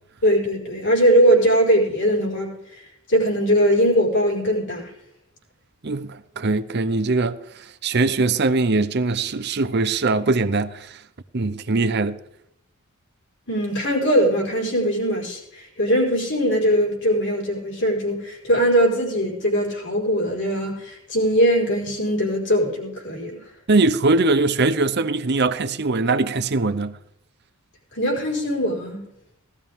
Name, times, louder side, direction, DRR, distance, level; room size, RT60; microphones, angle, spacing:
voice 1, 0.2-2.6 3.1-4.9 13.5-23.3 27.9-29.0, equal, 55° left, 4.7 m, -20 dB
voice 2, 5.8-7.4 7.8-10.9 11.3-12.2 23.7-27.0, right 3 dB, 50° right, 0.7 m, -21 dB
18.0 x 12.5 x 3.6 m
head